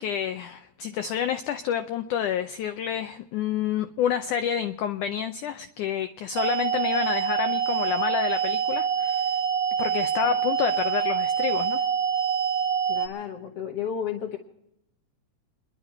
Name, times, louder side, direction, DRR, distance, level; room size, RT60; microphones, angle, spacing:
voice 1, 0.0-9.4 9.8-11.9, left 9 dB, 85° left, 9 dB, 1.8 m, -29 dB
sound 1, 6.4-13.1, right 7 dB, 55° right, 2.8 m, -25 dB
voice 2, 12.9-14.4, left 8 dB, 65° left, 3 dB, 1.5 m, -33 dB
29.0 x 11.0 x 4.4 m, 0.84 s
omnidirectional pair, 4.4 m